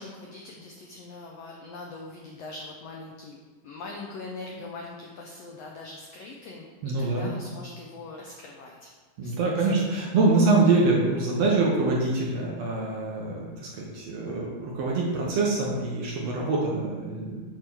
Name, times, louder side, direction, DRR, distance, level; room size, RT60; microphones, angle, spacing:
voice 1, 0.0-3.4 3.6-8.9 9.2-9.9, left 3 dB, 90° left, -1 dB, 1.4 m, -42 dB
voice 2, 6.8-7.3 9.2-17.4, right 3 dB, 65° right, -3 dB, 1.8 m, -25 dB
8.4 x 3.7 x 6.0 m, 1.4 s
omnidirectional pair, 3.9 m